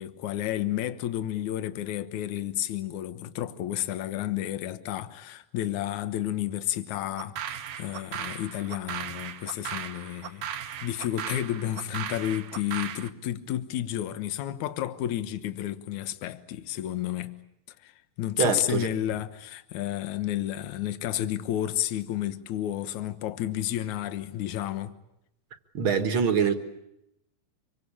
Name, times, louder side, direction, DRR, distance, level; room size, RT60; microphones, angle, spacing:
voice 1, 0.0-17.4 17.8-25.0, left 12 dB, 65° left, 2.4 m, -31 dB
sound 1, 7.2-13.1, right 9 dB, 65° right, 2.1 m, -37 dB
voice 2, 18.4-18.9 25.7-26.5, right 6 dB, 45° right, 1.9 m, -24 dB
26.0 x 24.5 x 8.6 m
omnidirectional pair, 4.0 m